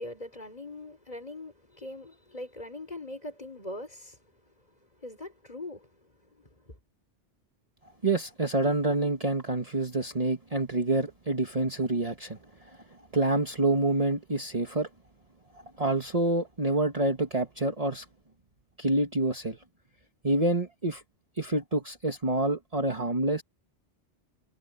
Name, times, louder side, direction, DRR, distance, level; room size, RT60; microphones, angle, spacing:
voice 1, 0.0-4.4 5.0-5.9 6.2-6.8, left 1 dB, 35° left, 4.6 m, -42 dB
voice 2, 8.0-12.8 13.1-14.9 15.5-18.1 18.8-19.6 20.2-21.0 21.4-23.4, right 2 dB, 30° right, 1.8 m, -27 dB
omnidirectional pair, 1.2 m